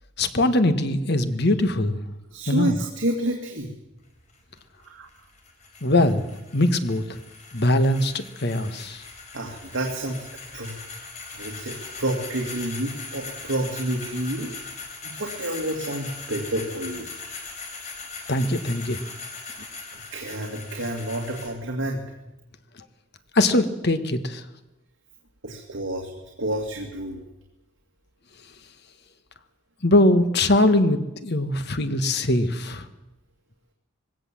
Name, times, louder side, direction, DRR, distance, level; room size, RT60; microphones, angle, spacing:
voice 1, 0.2-2.0 2.5-2.8 5.8-6.2 6.5-7.2 7.5-9.0 18.3-19.0 23.3-24.4 29.8-32.8, left 1 dB, 55° left, 10 dB, 1.5 m, -21 dB
voice 2, 2.3-3.7 4.8-5.1 9.3-10.3 10.5-10.8 11.3-14.5 15.0-17.1 20.1-22.1 25.4-26.1 26.4-27.2, right 1 dB, 70° right, 1 dB, 2.4 m, -29 dB
sound 1, 4.0-21.5, left 4 dB, 35° left, 4.1 m, -40 dB
20.5 x 17.0 x 7.6 m, 0.97 s
head